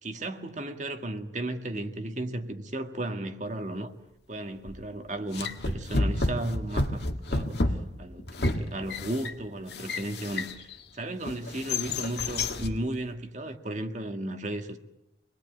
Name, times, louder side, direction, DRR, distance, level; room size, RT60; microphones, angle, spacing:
voice 1, 0.0-3.9 4.3-7.0 7.3-10.6 10.9-14.8, right 1 dB, 40° right, 1.8 m, -34 dB
sound 1, 4.7-4.9 5.3-10.8 11.3-12.8, left 2 dB, 60° left, 1.8 m, -30 dB
26.5 x 20.5 x 9.2 m
head